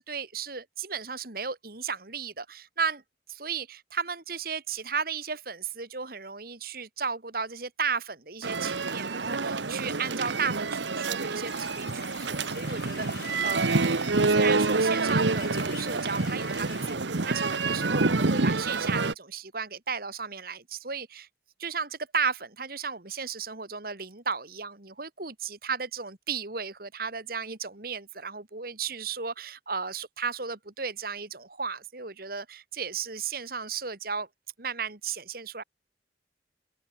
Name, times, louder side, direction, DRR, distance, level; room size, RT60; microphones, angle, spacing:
voice 1, 0.0-3.0 3.3-14.0 14.2-21.3 21.6-34.3 34.6-35.6, right 5 dB, 55° right, 2.3 m, -34 dB
sound 1, 8.4-19.1, right 3 dB, 90° right, 1.2 m, -27 dB
sound 2, 11.5-17.0, left 6 dB, 65° left, 4.4 m, -45 dB
open air
head